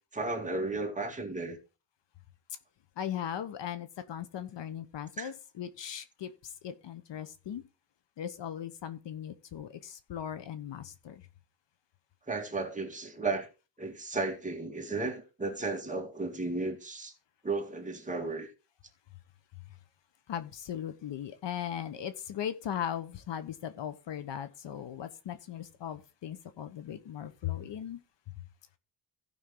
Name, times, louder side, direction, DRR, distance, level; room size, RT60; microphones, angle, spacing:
voice 1, 0.1-1.6 5.2-5.3 12.3-13.5 13.8-17.1 17.4-18.5, right 3 dB, 15° right, 2.2 m, -34 dB
voice 2, 3.0-7.6 8.2-11.3 19.7-19.8 20.3-28.0, left 9 dB, 65° left, 1.1 m, -38 dB
16.0 x 5.6 x 3.8 m
cardioid pair, 125°, 46 cm